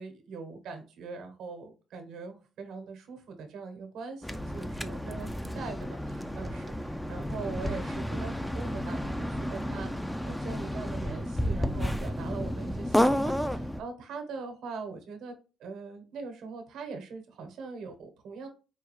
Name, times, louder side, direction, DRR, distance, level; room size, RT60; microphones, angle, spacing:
voice 1, 0.0-5.3 5.5-5.8 6.0-6.7 7.1-15.3 15.6-18.5, right 4 dB, 80° right, 6 dB, 1.0 m, -41 dB
sound 1, 4.2-13.8, equal, 5° left, 0.4 m, -31 dB
4.8 x 2.3 x 3.1 m, 0.33 s
cardioid pair, 90°, 0 cm